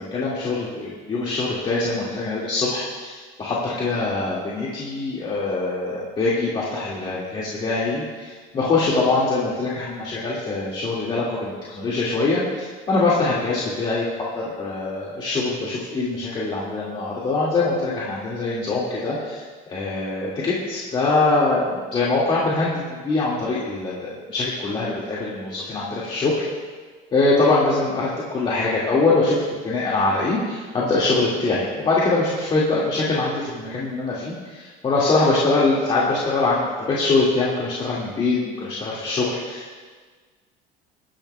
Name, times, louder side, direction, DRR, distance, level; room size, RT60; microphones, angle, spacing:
voice 1, 0.0-14.0 14.3-26.4 27.1-39.8, left 3 dB, 30° left, -7 dB, 2.1 m, -23 dB
23.0 x 11.5 x 2.3 m, 1.5 s
cardioid pair, 145°, 18 cm